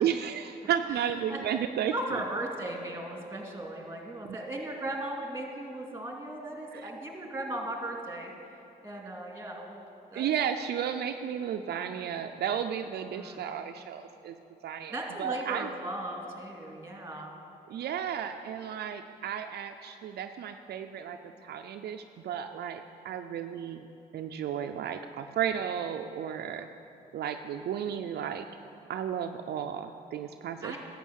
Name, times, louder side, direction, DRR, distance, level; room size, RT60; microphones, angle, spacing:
voice 1, 0.0-2.2 6.7-6.9 10.1-14.3 14.6-14.9 15.2-15.7 17.7-23.9 24.1-26.7 27.1-28.4 28.9-30.8, right 9 dB, 70° right, 6 dB, 0.5 m, -33 dB
voice 2, 0.8-1.4 1.9-8.3 8.8-9.8 10.1-10.2 13.1-13.4 14.9-17.3 26.5-26.7 30.6-30.8, right 1 dB, 15° right, 0 dB, 2.4 m, -37 dB
11.0 x 7.6 x 6.4 m, 2.7 s
cardioid pair, 65°, 17 cm